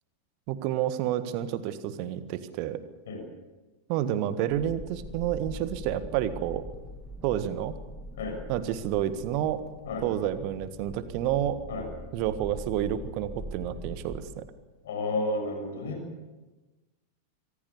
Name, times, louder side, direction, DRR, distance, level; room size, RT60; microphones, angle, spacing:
voice 1, 0.5-2.8 3.9-6.6 7.2-7.8 8.5-9.6 10.0-11.6 12.1-14.4, right 11 dB, 45° right, 12 dB, 1.6 m, -29 dB
sound 1, 4.5-14.2, equal, 5° left, 2.5 m, -42 dB
voice 2, 14.8-16.0, left 2 dB, 60° left, 4 dB, 6.6 m, -31 dB
24.5 x 16.5 x 7.1 m, 1.2 s
figure-of-eight pair, 90°, 0 cm